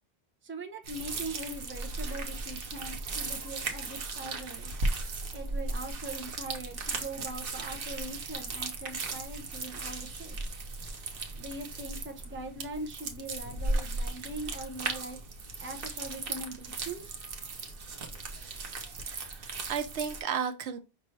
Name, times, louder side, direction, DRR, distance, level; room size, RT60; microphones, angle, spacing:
voice 1, 0.4-4.7 5.3-10.5 11.4-15.2 15.6-17.2, right 2 dB, 15° right, 0.5 m, -41 dB
sound 1, 0.8-20.2, right 3 dB, 60° right, 1.0 m, -36 dB
voice 2, 19.0-20.8, right 7 dB, 85° right, 1.0 m, -34 dB
5.3 x 2.6 x 3.1 m
omnidirectional pair, 1.1 m